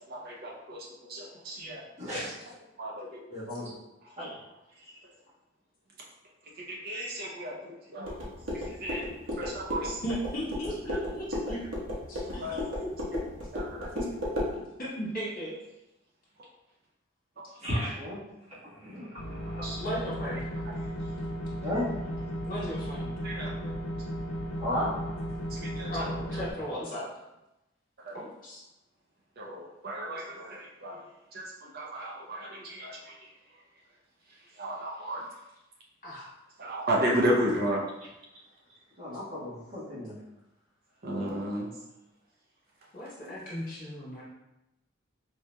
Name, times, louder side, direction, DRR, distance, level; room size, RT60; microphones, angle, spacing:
voice 1, 0.1-1.8 2.8-3.2 3.6-3.7 4.0-4.1 6.8-8.1 8.8-9.0 9.4-10.0 12.2-12.5 13.5-13.9 19.6-19.8 23.2-23.5 25.5-26.1 28.0-28.1 29.4-31.0 31.3-33.2 34.6-35.2 36.6-37.8 41.0-41.7, equal, 50° right, -2 dB, 0.6 m, -33 dB
voice 2, 2.0-2.4 3.3-3.7 4.2-4.4 4.8-4.9 17.6-18.2 18.5-19.8 21.6-21.9 24.6-24.9 39.0-40.2, left 1 dB, 35° right, -8 dB, 1.3 m, -34 dB
sound 1, 8.0-14.5, left 1 dB, 80° right, 1.0 m, -35 dB
voice 3, 10.0-11.6 12.1-13.2 13.9-14.0 14.6-15.5 19.8-20.4 22.5-23.1 25.9-27.1 28.1-28.6 36.0-36.2 39.1-39.2 42.9-44.2, equal, 45° left, -8 dB, 1.4 m, -36 dB
sound 2, 19.2-26.5, equal, 70° left, 0.6 m, -35 dB
4.5 x 2.7 x 2.2 m, 0.93 s
head